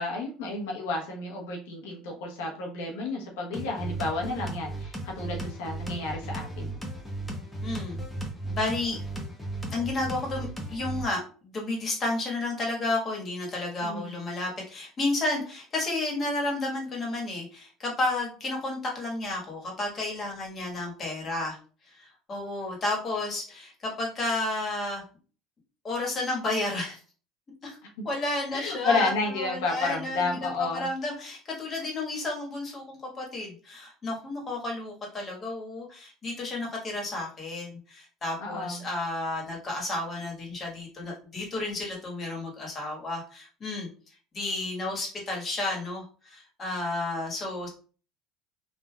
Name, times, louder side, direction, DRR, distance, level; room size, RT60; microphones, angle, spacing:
voice 1, 0.0-6.8 13.8-14.2 28.0-28.1 28.5-30.9 38.4-38.8, left 3 dB, 80° left, -1 dB, 1.0 m, -31 dB
sound 1, 3.5-11.0, right 2 dB, 10° left, 0.9 m, -36 dB
voice 2, 7.6-8.0 8.4-9.0 9.7-21.6 21.9-25.0 25.8-27.0 27.6-27.8 28.0-43.9 44.3-47.7, left 2 dB, 40° left, 0 dB, 1.4 m, -32 dB
3.3 x 2.5 x 2.3 m, 0.39 s
supercardioid pair, 85°, 0 cm